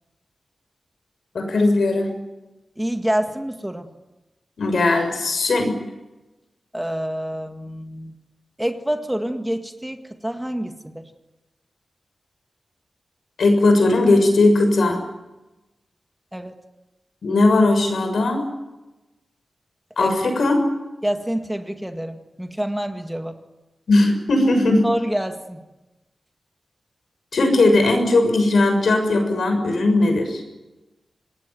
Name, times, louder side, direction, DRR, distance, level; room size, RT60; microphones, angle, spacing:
voice 1, 1.3-2.1 4.6-5.8 13.4-15.0 17.2-18.5 20.0-20.7 23.9-24.8 27.3-30.4, left 2 dB, 80° left, 5 dB, 6.8 m, -18 dB
voice 2, 2.8-3.9 6.7-8.1 8.6-11.1 16.3-16.5 20.0-20.1 21.0-23.4 24.8-25.6, right 1 dB, 5° right, 6 dB, 1.8 m, -27 dB
26.5 x 20.5 x 9.3 m, 1.0 s
wide cardioid pair, 140°, 0 cm